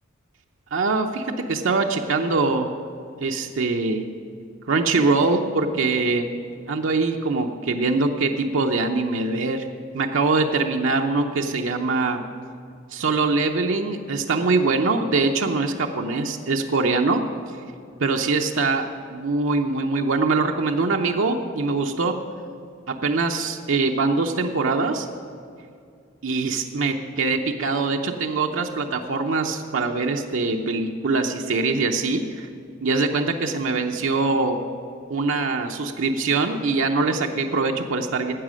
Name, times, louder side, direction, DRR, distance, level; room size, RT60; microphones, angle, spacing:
voice 1, 0.7-2.7 3.2-4.0 4.7-6.3 6.7-9.7 9.9-12.2 12.9-17.2 18.0-22.1 22.9-25.1 26.2-32.5 32.8-34.6 35.1-38.3, right 3 dB, 70° right, 3 dB, 0.6 m, -23 dB
12.5 x 8.3 x 6.3 m, 2.3 s
head